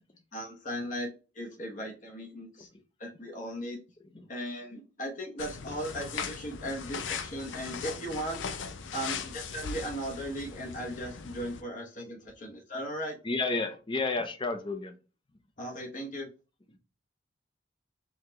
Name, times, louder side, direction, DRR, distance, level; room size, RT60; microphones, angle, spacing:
voice 1, 0.3-1.1 1.3-2.7 3.0-3.8 4.3-8.4 8.9-13.2 15.6-16.3, equal, 40° left, 0 dB, 1.0 m, -37 dB
sound 1, 5.4-11.6, left 6 dB, 75° left, 0.5 m, -39 dB
voice 2, 13.2-15.0, left 3 dB, 25° left, 7 dB, 0.6 m, -31 dB
4.1 x 2.9 x 3.1 m, 0.32 s
head